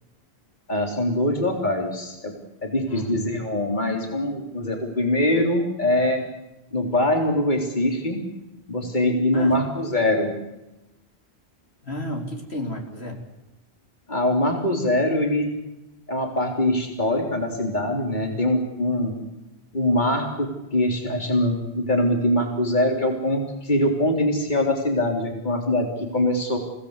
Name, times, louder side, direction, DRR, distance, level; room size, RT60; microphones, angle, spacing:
voice 1, 0.7-2.3 2.6-6.2 6.7-8.2 8.7-10.4 14.1-15.5 16.1-19.2 19.7-25.9 26.1-26.6, left 1 dB, 45° left, 2 dB, 3.8 m, -23 dB
voice 2, 2.9-3.2 9.3-9.6 11.8-13.2, left 1 dB, 75° left, 1 dB, 4.4 m, -32 dB
29.0 x 18.0 x 8.3 m, 0.96 s
omnidirectional pair, 1.1 m